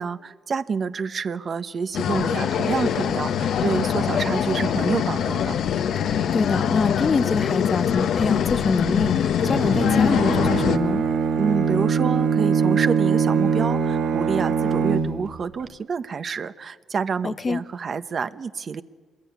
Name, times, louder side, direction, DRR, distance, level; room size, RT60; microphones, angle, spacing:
voice 1, 0.0-5.6 11.4-18.8, right 5 dB, 45° right, 1.0 m, -28 dB
sound 1, 1.9-10.8, left 8 dB, 70° left, 1.0 m, -23 dB
voice 2, 6.3-11.0 17.2-17.6, left 4 dB, 30° left, 0.7 m, -25 dB
Bowed string instrument, 9.4-15.4, right 6 dB, 70° right, 1.9 m, -22 dB
26.0 x 21.0 x 9.4 m
cardioid pair, 90°, 0 cm